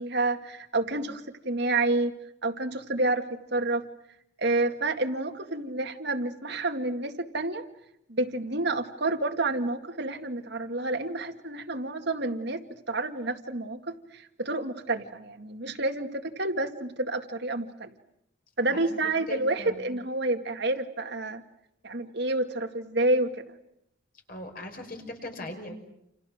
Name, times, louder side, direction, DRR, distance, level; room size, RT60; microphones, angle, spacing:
voice 1, 0.0-2.1 2.4-3.8 4.4-7.6 8.1-17.9 18.6-21.4 21.8-23.4, right 2 dB, 60° right, 5 dB, 2.1 m, -29 dB
voice 2, 19.3-19.8 24.3-25.8, left 1 dB, 45° left, 4 dB, 5.5 m, -39 dB
29.5 x 29.0 x 6.6 m, 0.79 s
head